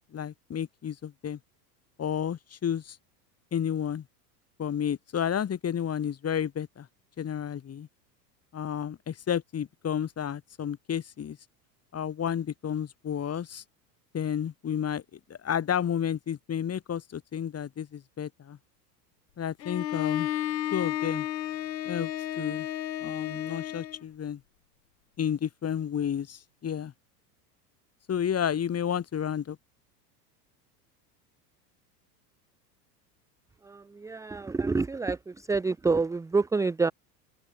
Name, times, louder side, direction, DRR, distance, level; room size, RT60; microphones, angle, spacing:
voice 1, 0.1-1.4 2.0-3.0 3.5-4.0 4.6-6.9 7.2-7.9 8.5-11.4 11.9-13.6 14.1-18.6 19.4-20.3 20.7-21.3 21.8-22.1 22.4-22.7 23.0-24.4 25.2-26.9 28.1-29.6, left 9 dB, 30° left, 4.3 m, -31 dB
Bowed string instrument, 19.6-24.0, left 12 dB, 85° left, 3.4 m, -32 dB
voice 2, 34.0-35.2 35.5-36.9, right 4 dB, 5° right, 0.6 m, -26 dB
open air
hypercardioid pair, 95°, 49 cm